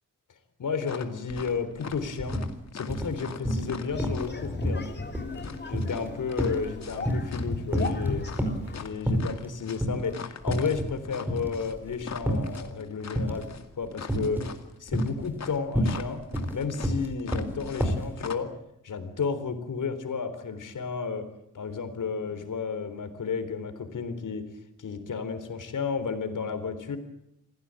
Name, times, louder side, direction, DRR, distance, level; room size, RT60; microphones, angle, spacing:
voice 1, 0.6-2.4 2.7-4.9 5.7-8.3 8.7-13.5 13.8-14.4 14.8-16.2 16.5-18.5 18.8-21.3 21.5-24.5 24.8-27.0, left 5 dB, 75° left, 9 dB, 3.8 m, -32 dB
sound 1, 0.8-1.5 1.8-4.5 5.3-7.5 7.8-17.9 18.2-18.4, left 6 dB, 55° left, 2.3 m, -42 dB
sound 2, 1.3-1.5 1.8-2.5 2.9-3.7 4.0-4.3 4.6-7.4 7.7-8.7 9.1-9.5 9.8-10.0 10.4-11.0 11.3-12.6 13.2-13.6 14.1-14.6 14.9-18.1, equal, 5° right, 5.1 m, -29 dB
sound 3, 3.9-8.9, left 3 dB, 35° left, 3.0 m, -36 dB
27.5 x 17.0 x 8.9 m, 0.79 s
wide cardioid pair, 130°, 31 cm